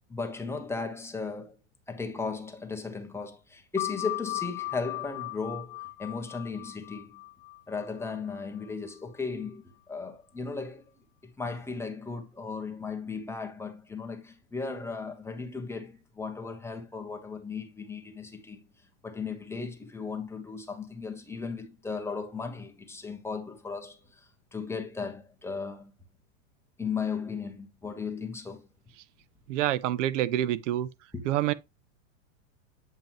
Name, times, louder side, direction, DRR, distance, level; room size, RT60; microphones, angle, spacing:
voice 1, 0.1-1.6 1.9-7.2 7.7-10.8 11.2-18.7 19.0-25.9 26.8-28.7 31.1-31.3, left 4 dB, 5° left, 1.3 m, -36 dB
sound 1, 3.8-8.9, left 21 dB, 40° left, 0.4 m, -38 dB
voice 2, 29.5-30.9 31.3-31.5, right 13 dB, 65° right, 0.7 m, -27 dB
8.9 x 5.4 x 3.0 m
supercardioid pair, 130°, 39 cm